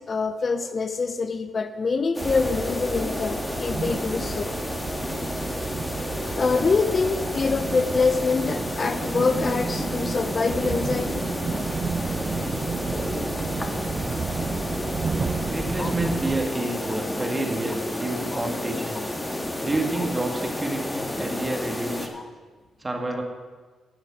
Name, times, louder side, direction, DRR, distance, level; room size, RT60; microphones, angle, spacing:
voice 1, 0.0-4.5 6.3-11.3 15.8-15.9 18.3-18.4 22.1-22.3, left 4 dB, 45° left, 10 dB, 0.6 m, -25 dB
sound 1, 2.1-22.1, left 1 dB, 15° left, 1.7 m, -31 dB
sound 2, 2.2-16.5, right 5 dB, 50° right, 0.4 m, -32 dB
voice 2, 15.5-19.0 19.6-22.1 22.8-23.2, right 2 dB, 25° right, 2 dB, 2.1 m, -29 dB
11.5 x 6.5 x 6.4 m, 1.4 s
supercardioid pair, 50°, 0 cm